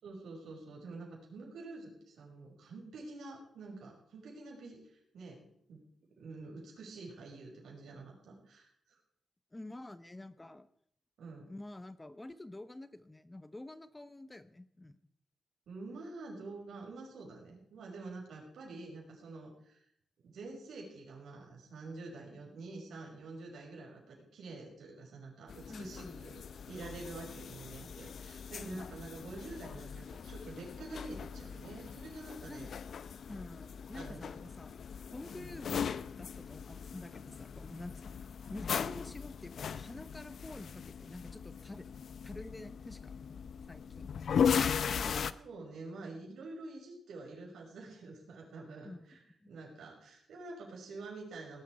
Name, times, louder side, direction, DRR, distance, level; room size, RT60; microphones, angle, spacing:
voice 1, 0.0-5.8 6.2-9.0 11.2-11.4 15.7-19.8 20.2-32.7 33.9-34.3 35.4-35.6 45.3-49.2 49.5-51.6, right 3 dB, 85° right, -1 dB, 5.7 m, -47 dB
voice 2, 9.5-10.7 11.5-15.0 25.7-26.2 28.6-28.9 32.5-32.7 33.3-34.8 35.1-38.2 38.5-41.9 42.2-43.1 43.7-44.1 44.8-45.4 48.8-49.0 49.4-49.5, left 1 dB, 15° left, 13 dB, 0.8 m, -48 dB
sound 1, 25.5-45.3, left 7 dB, 65° left, 0.6 m, -38 dB
18.5 x 11.5 x 4.8 m, 0.70 s
wide cardioid pair, 115°, 0 cm